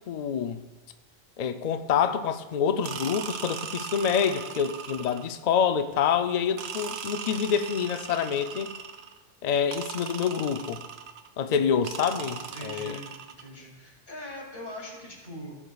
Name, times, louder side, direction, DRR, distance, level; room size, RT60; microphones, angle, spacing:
voice 1, 0.1-0.6 1.4-8.7 9.4-10.8 11.4-12.9, left 7 dB, 80° left, 9 dB, 0.3 m, -27 dB
sound 1, 2.8-5.4 6.6-9.2 9.7-11.3 11.8-13.5, right 7 dB, 60° right, 0.8 m, -38 dB
voice 2, 12.4-15.5, left 1 dB, 40° left, -4 dB, 2.9 m, -42 dB
18.0 x 7.3 x 2.3 m, 1.2 s
omnidirectional pair, 1.3 m